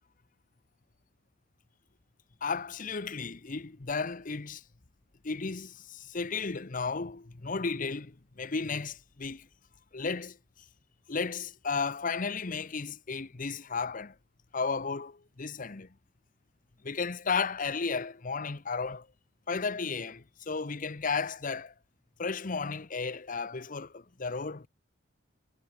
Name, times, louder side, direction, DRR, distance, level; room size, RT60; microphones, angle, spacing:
voice 1, 2.4-4.6 5.2-9.5 9.9-10.4 11.1-14.1 14.5-15.9 16.8-19.1 19.5-21.7 22.2-24.7, left 4 dB, 40° left, 0.8 m, -34 dB
head